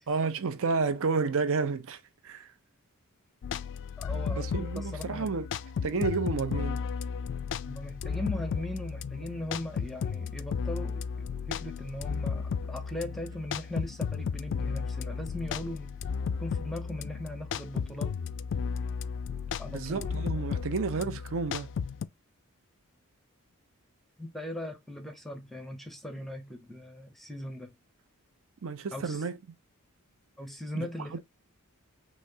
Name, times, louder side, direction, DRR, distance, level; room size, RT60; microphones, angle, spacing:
voice 1, 0.1-2.5 4.3-5.5 5.8-6.8 19.7-21.7 28.6-29.4 30.7-31.2, right 4 dB, 65° right, 0.6 m, -31 dB
sound 1, 3.4-22.1, left 6 dB, 55° left, 0.3 m, -34 dB
voice 2, 4.0-4.5 4.8-5.3 7.6-16.0 16.4-18.1 19.6-20.1 24.2-27.7 28.9-29.2 30.4-31.2, left 1 dB, ahead, 0.6 m, -39 dB
5.5 x 3.1 x 2.7 m
head